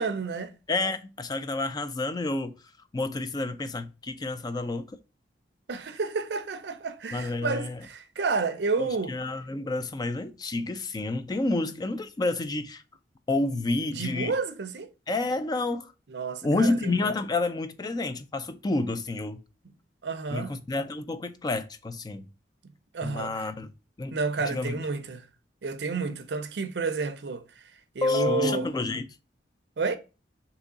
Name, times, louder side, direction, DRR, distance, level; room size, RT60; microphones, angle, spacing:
voice 1, 0.0-0.5 5.7-9.1 13.9-14.9 16.1-17.1 20.0-20.6 22.9-23.5 24.1-25.3 25.6-27.4 27.9-28.7 29.8-30.0, right 4 dB, 70° right, 0.5 m, -30 dB
voice 2, 0.7-2.5 2.9-4.9 7.1-7.8 8.8-12.8 13.3-14.4 15.1-15.9 16.4-19.4 20.3-22.3 23.0-23.7 24.0-24.2 24.5-24.8 28.0-29.1, left 2 dB, 25° left, 0.3 m, -29 dB
3.5 x 3.0 x 3.8 m
head